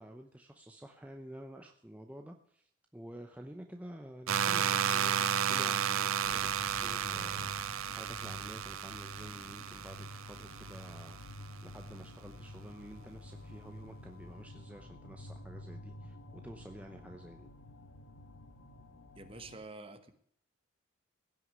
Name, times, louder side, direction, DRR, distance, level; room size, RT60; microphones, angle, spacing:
voice 1, 0.0-11.4 11.6-17.5, equal, 5° right, 3 dB, 0.7 m, -50 dB
sound 1, 4.3-11.1, right 8 dB, 80° right, 0.6 m, -33 dB
sound 2, 6.2-19.6, left 1 dB, 80° left, 1.7 m, -49 dB
voice 2, 19.1-20.1, right 3 dB, 25° right, 10 dB, 1.2 m, -47 dB
16.5 x 6.3 x 9.5 m, 0.65 s
head